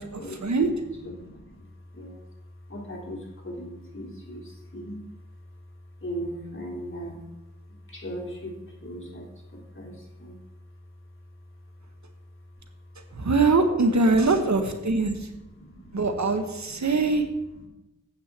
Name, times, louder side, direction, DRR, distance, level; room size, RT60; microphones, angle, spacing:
voice 1, 0.0-1.7 1.9-2.2 2.7-5.0 6.0-7.2 7.9-10.4 14.4-14.5 14.8-16.0 16.6-17.1 17.6-17.7, equal, 40° left, -2 dB, 3.4 m, -39 dB
voice 2, 13.1-15.2 15.9-17.2, right 3 dB, 60° right, 6 dB, 1.3 m, -22 dB
8.4 x 6.6 x 7.4 m, 0.97 s
wide cardioid pair, 60°, 32 cm